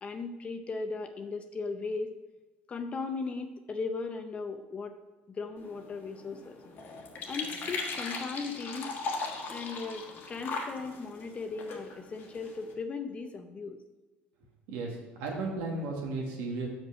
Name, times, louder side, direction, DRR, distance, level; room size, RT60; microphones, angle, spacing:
voice 1, 0.0-2.1 2.7-5.0 5.3-6.6 7.3-8.9 9.5-13.8, left 4 dB, 30° left, 7 dB, 0.6 m, -37 dB
sound 1, 5.6-12.7, left 4 dB, 50° left, 1.4 m, -39 dB
voice 2, 14.7-16.7, right 3 dB, 85° right, -1 dB, 1.4 m, -34 dB
6.1 x 5.4 x 6.4 m, 1.2 s
cardioid pair, 110°, 4 cm